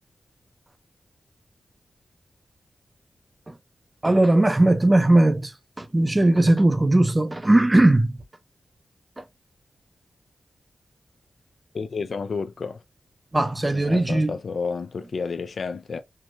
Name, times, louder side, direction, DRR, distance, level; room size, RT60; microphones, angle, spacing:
voice 1, 4.0-8.2 9.2-9.3 13.3-14.3, right 1 dB, 20° right, 0.5 m, -19 dB
voice 2, 11.7-12.8 13.7-16.0, left 5 dB, 65° left, 0.3 m, -31 dB
4.5 x 2.1 x 2.3 m
wide cardioid pair, 85°, 0 cm